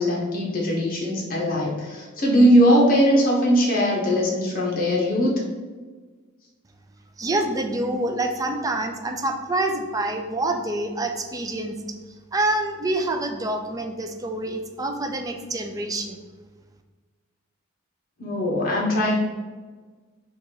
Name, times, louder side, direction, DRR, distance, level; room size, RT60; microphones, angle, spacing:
voice 1, 0.0-5.3 18.2-19.2, equal, 45° left, -3 dB, 1.1 m, -20 dB
voice 2, 7.2-11.8 12.3-16.2, right 2 dB, 15° right, 5 dB, 0.4 m, -26 dB
4.0 x 2.5 x 4.6 m, 1.4 s
head